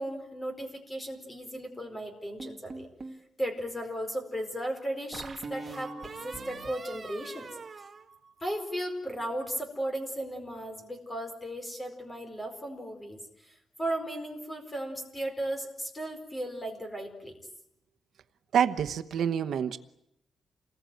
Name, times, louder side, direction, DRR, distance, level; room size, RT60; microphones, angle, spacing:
voice 1, 0.0-2.9 3.4-7.5 8.4-13.5 13.8-17.3, right 1 dB, 15° left, 5 dB, 4.6 m, -36 dB
sound 1, 2.4-3.2 5.1-8.8, right 3 dB, 25° right, 1.8 m, -43 dB
voice 2, 18.5-19.8, right 8 dB, 65° right, 10 dB, 1.0 m, -27 dB
28.0 x 21.0 x 9.2 m, 0.82 s
wide cardioid pair, 180°, 0 cm